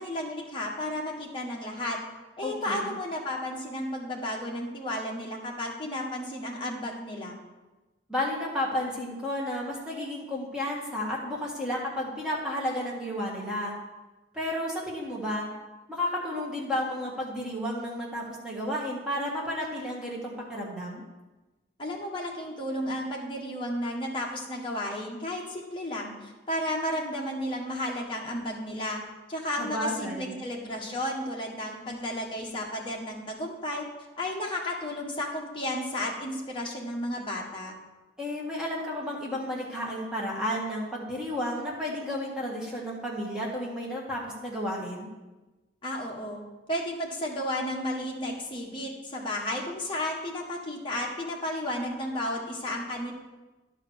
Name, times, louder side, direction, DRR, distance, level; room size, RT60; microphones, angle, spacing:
voice 1, 0.0-2.0 2.4-7.4 21.8-29.0 29.3-33.8 34.2-37.7 45.8-46.4 46.7-53.1, left 1 dB, 25° left, -2 dB, 1.6 m, -33 dB
voice 2, 2.4-2.9 8.1-13.7 14.3-15.5 15.9-21.0 29.6-30.3 38.2-45.1, left 1 dB, 5° right, -5 dB, 1.6 m, -32 dB
11.5 x 5.0 x 6.4 m, 1.1 s
head